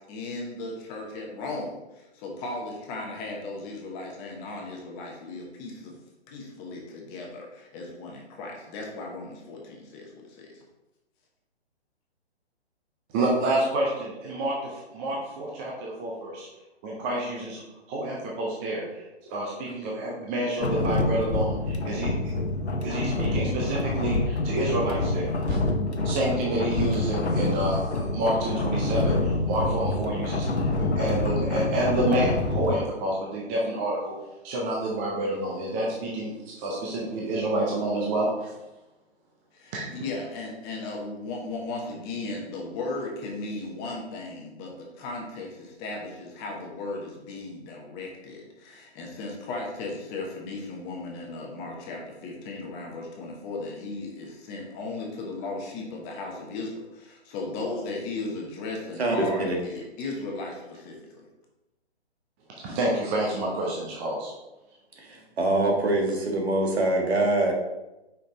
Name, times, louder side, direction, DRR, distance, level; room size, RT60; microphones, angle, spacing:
voice 1, 0.1-6.0 6.3-10.6 39.5-61.2, left 3 dB, 20° left, 0 dB, 1.0 m, -36 dB
voice 2, 13.1-16.5 16.8-17.6 17.9-22.3 22.7-25.6 26.0-34.1 34.4-38.6 39.7-39.9 62.6-64.3, right 1 dB, 15° right, -3 dB, 0.4 m, -28 dB
sound 1, 20.6-32.8, left 2 dB, 90° left, 0.8 m, -27 dB
voice 3, 59.0-59.6 65.0-67.5, right 2 dB, 75° right, 1 dB, 1.7 m, -24 dB
5.4 x 5.0 x 3.9 m, 1.0 s
figure-of-eight pair, 135°, 33 cm